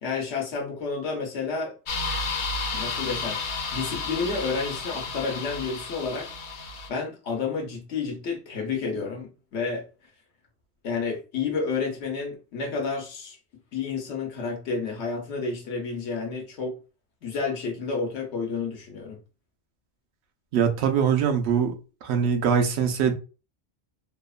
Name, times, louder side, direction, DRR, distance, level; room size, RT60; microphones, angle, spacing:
voice 1, 0.0-1.7 2.7-3.4 3.7-6.3 6.9-9.8 10.8-13.4 13.7-16.7 17.2-19.2, left 4 dB, 85° left, 1.0 m, -30 dB
sound 1, 1.9-6.9, left 3 dB, 60° left, 0.6 m, -32 dB
voice 2, 20.5-23.1, right 7 dB, 80° right, 0.8 m, -23 dB
2.9 x 2.0 x 2.3 m
omnidirectional pair, 1.1 m